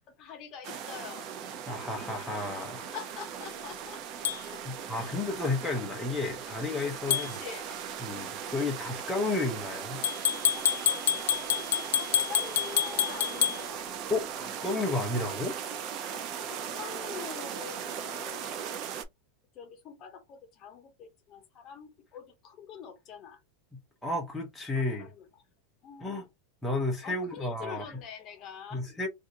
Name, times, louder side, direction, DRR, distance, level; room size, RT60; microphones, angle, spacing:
voice 1, 0.2-1.3 2.9-4.0 4.4-5.8 7.0-7.9 11.9-13.9 16.1-18.5 19.5-23.4 24.8-25.3 25.8-26.2 27.0-28.9, left 7 dB, 30° left, 0.9 m, -45 dB
sound 1, 0.6-19.0, right 8 dB, 35° right, 0.5 m, -38 dB
voice 2, 1.7-2.9 4.6-7.3 8.0-10.0 11.6-11.8 14.1-15.6 24.0-25.1 26.0-26.3 26.6-27.8 28.7-29.1, left 2 dB, 5° left, 0.6 m, -32 dB
sound 2, 4.2-4.4 7.1-7.3 10.0-13.6, left 10 dB, 80° left, 0.3 m, -27 dB
2.6 x 2.5 x 3.7 m
supercardioid pair, 165°, 0 cm